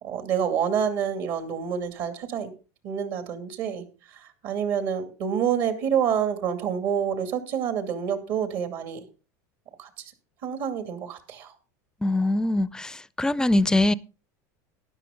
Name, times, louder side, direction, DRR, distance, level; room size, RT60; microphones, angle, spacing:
voice 1, 0.0-2.5 2.8-9.0 9.8-10.1 10.4-11.5, right 8 dB, 60° right, 2.4 m, -28 dB
voice 2, 12.0-12.9 13.2-13.9, left 1 dB, 5° left, 0.5 m, -22 dB
12.5 x 10.0 x 3.8 m
supercardioid pair, 115°, 9 cm